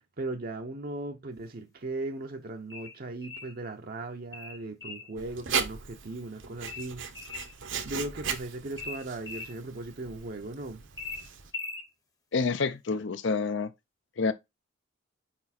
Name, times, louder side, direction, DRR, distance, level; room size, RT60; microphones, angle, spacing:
voice 1, 0.2-7.0 7.8-10.8, right 2 dB, 50° right, 0.7 m, -38 dB
sound 1, 2.7-3.5 4.3-5.1 6.7-7.5 8.8-9.5 11.0-11.9, left 4 dB, 20° left, 0.9 m, -40 dB
Writing, 5.2-11.5, right 6 dB, 75° right, 1.0 m, -37 dB
voice 2, 12.3-13.7 14.2-14.3, left 4 dB, 65° left, 0.6 m, -28 dB
5.1 x 4.4 x 4.2 m
head